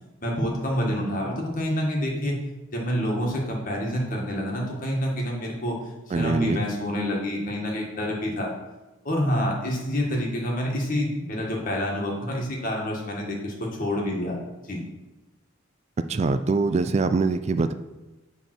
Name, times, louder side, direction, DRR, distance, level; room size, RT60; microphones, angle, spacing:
voice 1, 0.2-2.4 2.7-5.7 6.1-8.5 9.0-14.4 14.6-14.8, equal, 45° left, -1 dB, 1.6 m, -27 dB
voice 2, 6.1-6.6 16.1-17.7, right 3 dB, 35° right, 10 dB, 0.3 m, -23 dB
7.2 x 3.5 x 6.0 m, 1.1 s
head